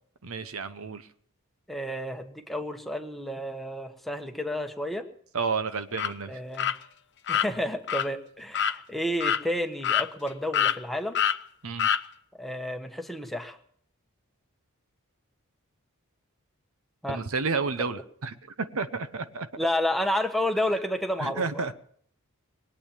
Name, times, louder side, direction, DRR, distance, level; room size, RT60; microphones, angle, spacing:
voice 1, 0.2-1.1 5.3-6.4 11.6-11.9 17.1-19.5 21.2-21.7, right 4 dB, 70° right, 11 dB, 0.9 m, -31 dB
voice 2, 1.7-5.0 6.3-6.8 7.3-11.2 12.4-13.6 17.0-17.2 19.6-21.7, left 1 dB, ahead, 5 dB, 1.2 m, -31 dB
sound 1, 5.9-6.1 6.6-6.8 7.3-7.5 7.9-8.1 8.5-8.8 9.2-9.4 9.8-10.3 10.5-10.8 11.1-11.4 11.8-12.0, left 9 dB, 55° left, 0.7 m, -25 dB
21.5 x 8.6 x 7.3 m, 0.63 s
head